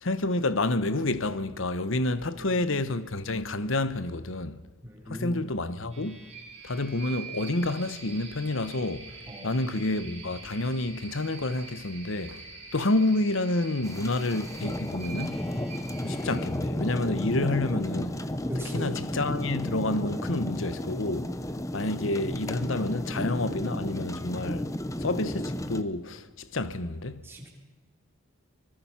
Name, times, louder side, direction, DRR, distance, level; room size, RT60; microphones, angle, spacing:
voice 1, 0.0-4.6 5.1-6.3 6.6-9.1 9.4-12.4 12.7-15.4 16.0-18.2 18.6-21.3 21.7-24.7 25.0-27.2, left 2 dB, 70° left, 1.1 m, -29 dB
voice 2, 4.8-5.5 9.3-9.5 18.5-18.9 27.2-27.5, left 1 dB, 10° right, 3.7 m, -38 dB
sound 1, 5.9-16.4, right 4 dB, 30° right, 7.5 m, -45 dB
sound 2, 13.8-25.8, left 1 dB, 15° left, 0.8 m, -33 dB
25.0 x 20.0 x 5.8 m
head